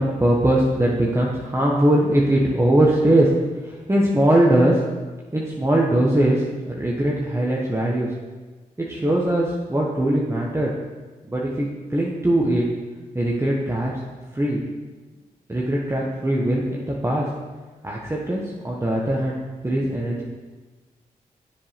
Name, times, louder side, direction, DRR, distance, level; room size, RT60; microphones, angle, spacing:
voice 1, 0.0-3.3 3.6-4.8 5.3-8.1 8.8-10.7 11.3-12.6 13.1-13.9 14.3-14.6 15.5-17.3 17.8-19.4 19.6-20.2, right 1 dB, 15° right, -3 dB, 1.3 m, -21 dB
7.1 x 5.1 x 5.9 m, 1.3 s
supercardioid pair, 40°, 16 cm